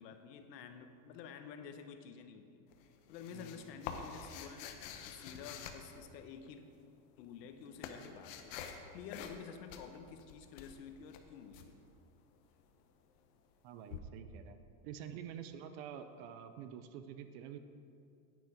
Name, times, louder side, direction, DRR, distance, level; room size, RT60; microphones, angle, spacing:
voice 1, 0.0-2.6 3.1-4.7 5.0-6.6 7.2-11.8, left 7 dB, 85° left, 7 dB, 1.1 m, -50 dB
sound 1, 2.7-6.5 7.3-8.8 9.1-9.4 9.7-11.7 13.9-14.0, left 7 dB, 50° left, 1.0 m, -47 dB
voice 2, 13.6-14.6 14.8-17.6, right 8 dB, 40° right, 9 dB, 0.5 m, -48 dB
10.5 x 9.3 x 5.0 m, 2.5 s
supercardioid pair, 175°, 48 cm